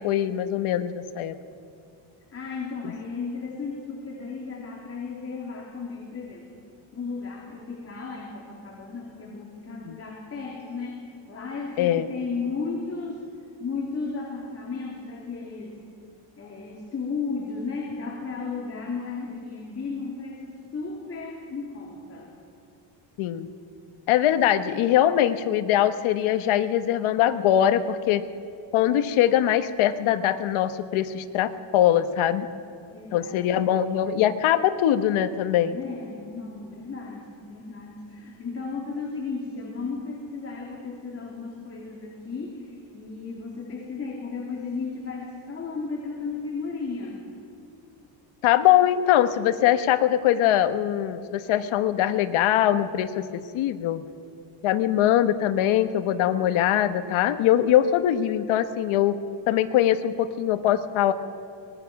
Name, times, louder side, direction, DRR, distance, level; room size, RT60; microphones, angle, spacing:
voice 1, 0.0-1.4 9.9-10.0 11.8-12.1 23.2-23.5 24.1-28.3 28.7-32.5 33.1-35.8 48.4-54.0 54.6-59.2 59.5-61.1, left 11 dB, 75° left, 10 dB, 1.2 m, -22 dB
voice 2, 2.3-6.6 6.9-13.3 13.6-15.8 16.4-22.3 32.9-33.7 35.7-47.3, left 4 dB, 30° left, -2 dB, 2.9 m, -34 dB
24.0 x 20.0 x 6.0 m, 2.5 s
cardioid pair, 135°, 49 cm